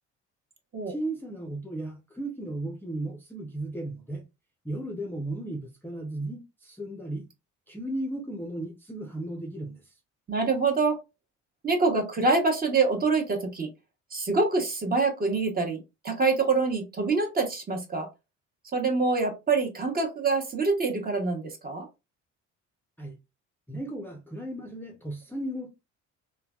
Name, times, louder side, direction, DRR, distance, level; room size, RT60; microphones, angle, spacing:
voice 1, 0.9-4.2 4.6-7.3 7.7-9.9 23.0-23.2 23.7-25.7, right 1 dB, 5° left, 0.6 m, -35 dB
voice 2, 10.3-11.0 11.6-13.7 14.1-18.1 18.7-21.9, right 3 dB, 30° right, 0.9 m, -25 dB
3.1 x 2.2 x 2.3 m
cardioid pair, 95°, 30 cm